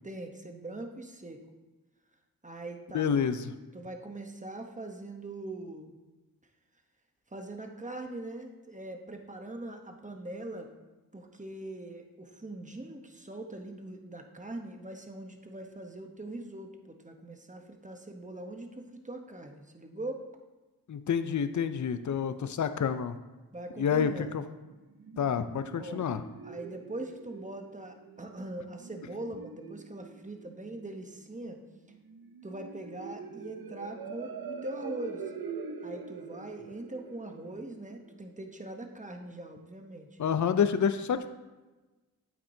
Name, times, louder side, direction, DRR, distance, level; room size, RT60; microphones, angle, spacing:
voice 1, 0.0-1.4 2.4-3.1 3.7-6.0 7.3-10.7 11.1-20.2 23.5-24.4 25.8-26.1 26.4-31.6 32.4-35.2 35.8-40.1, right 2 dB, 20° right, 4 dB, 0.9 m, -42 dB
voice 2, 2.9-3.5 20.9-23.2 23.8-24.4 25.2-26.2 40.2-41.3, left 7 dB, 50° left, 10 dB, 0.5 m, -28 dB
sound 1, 24.6-38.6, right 5 dB, 70° right, 0.7 m, -45 dB
8.6 x 8.5 x 2.7 m, 1.2 s
wide cardioid pair, 65°, 37 cm